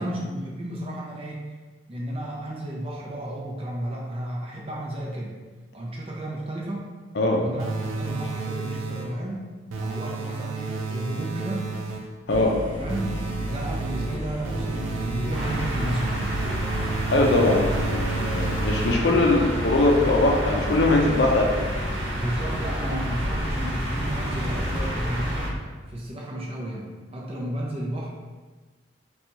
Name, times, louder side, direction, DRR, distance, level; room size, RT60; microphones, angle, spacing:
voice 1, 0.0-1.4 1.9-5.3 5.7-6.9 7.4-9.5 9.8-11.7 12.8-13.1 13.5-16.4 22.1-25.6 25.9-26.9 27.1-28.1, right 1 dB, 30° right, -3 dB, 0.5 m, -32 dB
sound 1, 7.6-9.3 9.7-12.2 12.9-19.3, right 4 dB, 85° right, 0.4 m, -32 dB
sound 2, 12.3-25.6, equal, 15° left, 0.9 m, -31 dB
sound 3, 15.3-25.5, equal, 70° right, 0.9 m, -32 dB
voice 2, 17.1-21.7, left 2 dB, 60° left, 0 dB, 0.5 m, -21 dB
2.8 x 2.3 x 4.0 m, 1.3 s
head